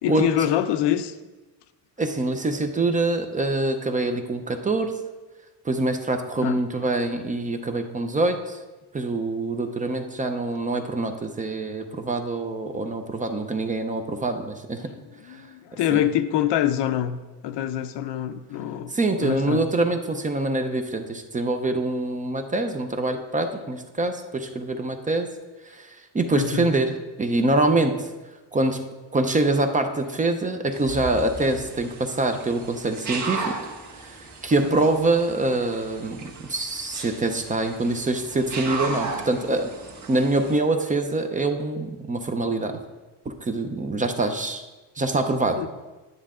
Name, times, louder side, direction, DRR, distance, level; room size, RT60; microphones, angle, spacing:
voice 1, 0.0-1.2 6.4-6.6 15.2-17.2 17.4-18.9 19.2-19.7 26.3-26.7 34.6-34.7 45.6-45.7, left 11 dB, 75° left, 11 dB, 0.7 m, -25 dB
voice 2, 2.0-4.9 5.6-8.6 8.9-14.9 15.9-16.0 18.9-25.3 25.7-26.9 27.2-28.0 28.5-28.8 29.1-33.6 34.0-34.2 34.4-39.7 40.1-42.8 43.4-44.6 45.0-45.6, right 2 dB, 20° right, 6 dB, 0.6 m, -25 dB
sound 1, 30.7-40.6, right 3 dB, 45° right, 1.6 m, -36 dB
10.0 x 9.6 x 3.7 m, 1.2 s
cardioid pair, 155°, 42 cm